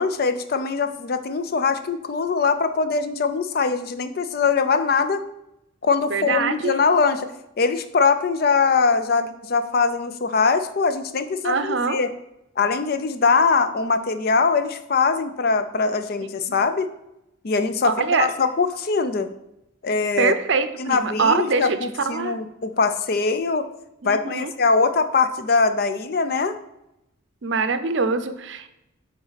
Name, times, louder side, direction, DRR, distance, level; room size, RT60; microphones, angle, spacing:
voice 1, 0.0-5.2 5.8-7.3 7.6-12.1 12.6-16.9 17.4-17.9 18.2-19.3 19.8-20.3 20.8-23.7 24.0-26.5, left 4 dB, 45° left, 10 dB, 0.5 m, -22 dB
voice 2, 6.1-6.7 11.4-12.0 17.8-18.3 20.2-21.8 22.1-22.4 24.0-24.5 27.4-28.7, right 4 dB, 60° right, 10 dB, 0.6 m, -23 dB
7.8 x 4.1 x 4.0 m, 0.87 s
head